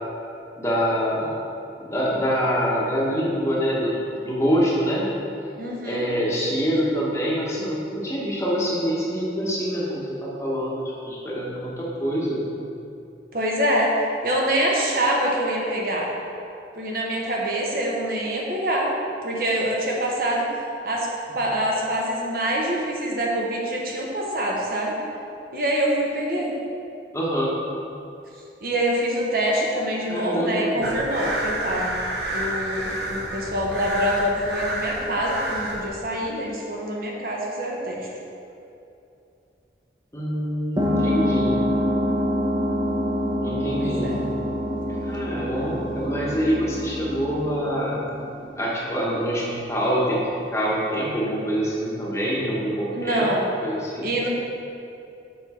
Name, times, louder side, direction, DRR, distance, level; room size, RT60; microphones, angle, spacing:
voice 1, 0.6-1.4 1.8-5.0 5.8-12.5 27.1-27.5 30.1-30.9 40.1-41.6 43.4-44.2 45.0-48.0 48.6-50.2 50.5-53.3 53.6-54.1, equal, 15° left, -5 dB, 1.1 m, -25 dB
voice 2, 5.6-6.1 13.3-13.9 14.2-16.1 16.8-18.9 19.2-20.5 20.8-21.1 21.3-25.0 25.5-26.5 28.6-32.0 32.3-38.1 43.8-44.2 52.9-53.5 54.0-54.3, right 1 dB, 55° right, -2 dB, 1.0 m, -25 dB
sound 1, 30.8-35.9, right 1 dB, 70° right, 1.0 m, -30 dB
sound 2, 40.8-48.9, equal, 25° right, 0.9 m, -26 dB
6.9 x 5.4 x 4.2 m, 2.7 s
head